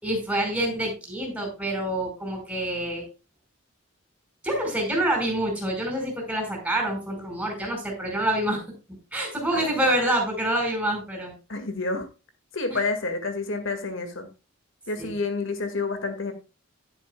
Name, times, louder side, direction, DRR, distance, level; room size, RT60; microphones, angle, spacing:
voice 1, 0.0-3.0 4.4-8.6 9.1-11.3 12.7-12.8 15.0-15.1, right 1 dB, 5° right, 1 dB, 5.0 m, -27 dB
voice 2, 9.5-10.0 11.5-12.1 12.5-14.3 14.9-16.3, left 3 dB, 70° left, 8 dB, 2.0 m, -29 dB
12.0 x 11.0 x 2.3 m, 0.29 s
head